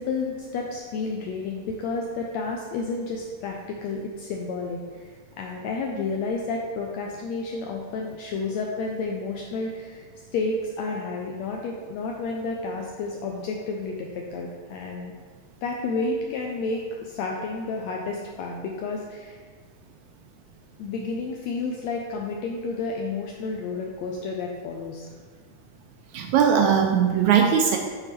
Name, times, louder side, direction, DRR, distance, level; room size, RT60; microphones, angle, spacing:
voice 1, 0.0-5.1 5.4-10.0 10.3-15.1 15.6-19.4 20.8-25.1, left 3 dB, 80° left, 0 dB, 1.6 m, -31 dB
voice 2, 26.1-27.8, right 7 dB, 80° right, 3 dB, 1.7 m, -19 dB
8.4 x 4.5 x 3.5 m, 1.5 s
omnidirectional pair, 3.6 m